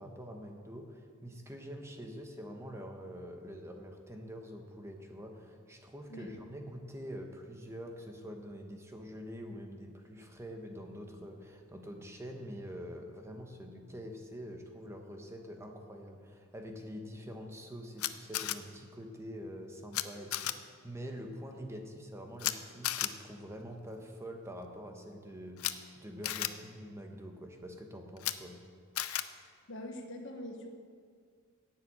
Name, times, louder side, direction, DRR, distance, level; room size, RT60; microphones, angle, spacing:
voice 1, 0.0-28.6, equal, 15° right, 3 dB, 1.1 m, -45 dB
Camera, 18.0-18.5 19.9-20.0 20.3-20.5 22.4-22.5 22.8-23.1 25.6-25.7 26.2-26.5 28.2-28.3 29.0-29.2, left 13 dB, 80° left, 0.5 m, -33 dB
voice 2, 29.7-30.7, left 1 dB, 60° left, 4 dB, 1.4 m, -43 dB
10.5 x 7.5 x 8.8 m, 2.1 s
head